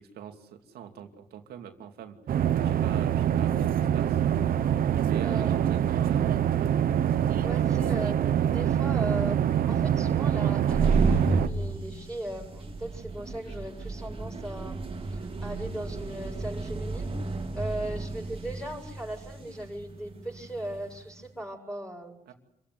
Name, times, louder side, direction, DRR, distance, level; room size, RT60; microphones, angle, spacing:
voice 1, 0.0-2.2 2.6-4.2 5.0-6.7 22.3-22.4, right 9 dB, 90° right, 5 dB, 2.7 m, -43 dB
sound 1, 2.3-11.5, right 10 dB, 65° right, 1.0 m, -25 dB
voice 2, 5.2-5.9 7.4-22.2, right 1 dB, 5° left, -2 dB, 7.0 m, -38 dB
sound 2, 10.5-21.0, right 3 dB, 35° right, 3.2 m, -32 dB
27.5 x 15.5 x 9.6 m, 0.82 s
cardioid pair, 95°, 16 cm